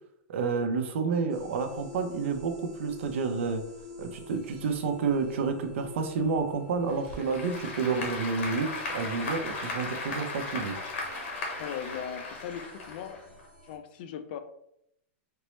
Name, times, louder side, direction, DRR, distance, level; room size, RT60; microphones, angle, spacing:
voice 1, 0.3-3.6 4.0-10.8, right 5 dB, 65° right, 5 dB, 0.6 m, -30 dB
sound 1, 1.3-13.8, left 2 dB, 30° right, 1.0 m, -49 dB
Applause / Crowd, 6.9-13.5, left 3 dB, 75° left, 1.0 m, -36 dB
voice 2, 11.6-13.2 13.6-14.4, left 8 dB, 45° left, 9 dB, 0.4 m, -38 dB
4.3 x 2.0 x 3.0 m, 0.74 s
supercardioid pair, 170°, 7 cm